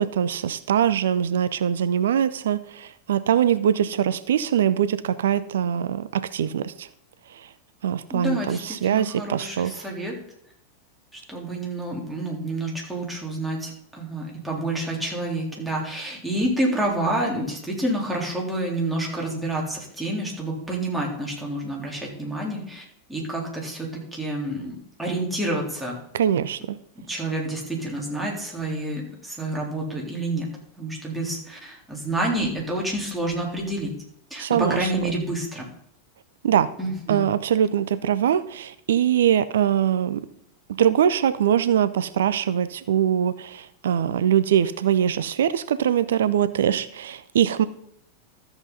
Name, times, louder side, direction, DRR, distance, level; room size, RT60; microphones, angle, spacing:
voice 1, 0.0-6.9 7.8-9.9 26.1-26.8 34.4-34.9 36.4-36.7 37.1-40.3 40.7-47.7, right 9 dB, 60° right, 15 dB, 0.6 m, -22 dB
voice 2, 8.1-10.1 11.1-22.8 23.1-26.0 27.1-30.5 30.8-33.9 34.3-35.7 36.8-37.2, right 1 dB, 5° right, -3 dB, 3.7 m, -28 dB
13.0 x 7.9 x 4.1 m, 0.71 s
figure-of-eight pair, 90°, 0 cm